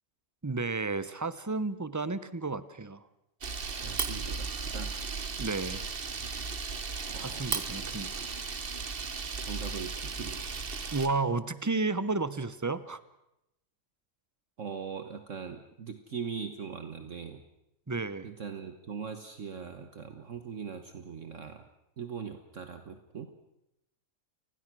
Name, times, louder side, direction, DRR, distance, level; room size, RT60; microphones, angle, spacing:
voice 1, 0.4-3.1 5.4-5.9 7.2-8.3 10.9-13.0 17.9-18.3, right 3 dB, 15° right, 15 dB, 0.7 m, -32 dB
Camera, 3.4-11.1, right 4 dB, 40° right, 1.3 m, -36 dB
voice 2, 3.7-5.0 7.1-7.5 7.8-7.9 9.4-10.5 14.6-17.4 18.2-21.7 22.0-23.3, right 6 dB, 55° right, 7 dB, 1.6 m, -41 dB
29.0 x 20.5 x 6.2 m, 0.86 s
omnidirectional pair, 1.5 m